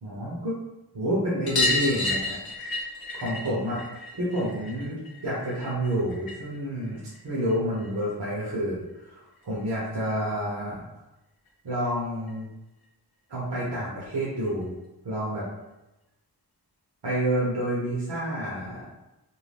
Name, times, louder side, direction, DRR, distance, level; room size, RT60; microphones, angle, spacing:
voice 1, 0.0-0.6 0.9-2.8 3.1-3.8 4.2-10.8 11.6-12.5 13.3-14.7 15.0-15.4 17.0-18.9, equal, 70° right, -7 dB, 0.8 m, -29 dB
sound 1, 1.5-6.6 6.9-8.0 9.4-9.5 9.7-9.8 10.1-10.2 11.5-11.6 11.8-11.9 12.3-12.4 13.6-13.7 14.5-14.6, left 2 dB, 60° left, 0.6 m, -31 dB
2.6 x 2.2 x 3.3 m, 0.97 s
wide cardioid pair, 75°, 41 cm